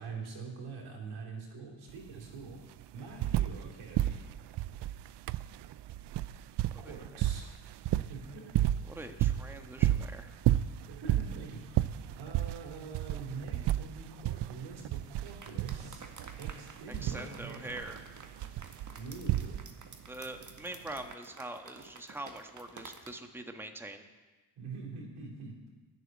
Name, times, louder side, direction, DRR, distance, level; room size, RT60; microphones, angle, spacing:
voice 1, 0.0-2.7 2.9-4.2 6.8-7.5 8.1-8.6 10.9-16.1 16.4-18.0 18.9-19.6 24.6-25.6, right 4 dB, 75° right, -1 dB, 3.2 m, -44 dB
sound 1, 1.9-2.0 2.2-3.7 3.9-19.9 21.0-21.1, right 13 dB, 55° right, 0.5 m, -32 dB
voice 2, 8.9-10.3 16.9-18.0 20.1-24.0, right 2 dB, 5° right, 5 dB, 1.4 m, -43 dB
sound 2, 15.2-23.1, right 4 dB, 35° right, 1.8 m, -51 dB
11.0 x 7.1 x 9.0 m, 1.2 s
hypercardioid pair, 45°, 49 cm